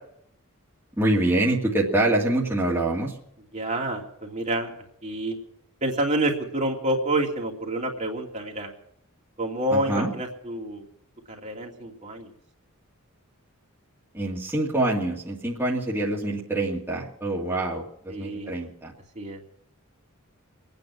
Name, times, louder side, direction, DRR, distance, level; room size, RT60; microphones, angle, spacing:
voice 1, 1.0-3.1 9.7-10.1 14.1-18.9, right 2 dB, 10° right, -5 dB, 2.3 m, -25 dB
voice 2, 3.5-4.7 5.0-5.4 5.8-8.7 9.4-10.8 11.3-12.3 18.1-18.5 19.1-19.4, right 1 dB, 35° right, 0 dB, 2.7 m, -28 dB
24.5 x 9.4 x 6.2 m, 0.73 s
head